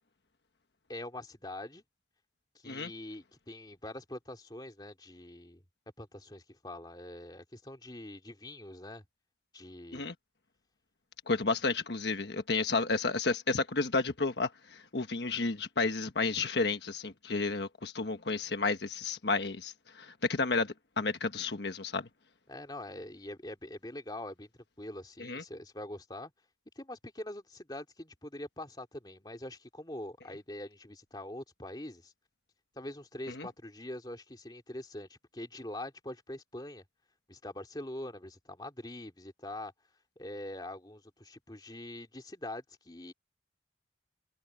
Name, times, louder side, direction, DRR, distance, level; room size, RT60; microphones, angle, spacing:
voice 1, 0.9-1.8 2.6-5.6 6.0-9.0 9.5-10.0 22.5-24.5 24.8-26.3 26.8-32.1 32.7-36.8 37.3-39.7 40.2-43.1, left 1 dB, 25° left, 2.9 m, -44 dB
voice 2, 11.3-22.1 25.2-25.4 33.3-33.5, left 3 dB, 75° left, 1.3 m, -32 dB
open air
head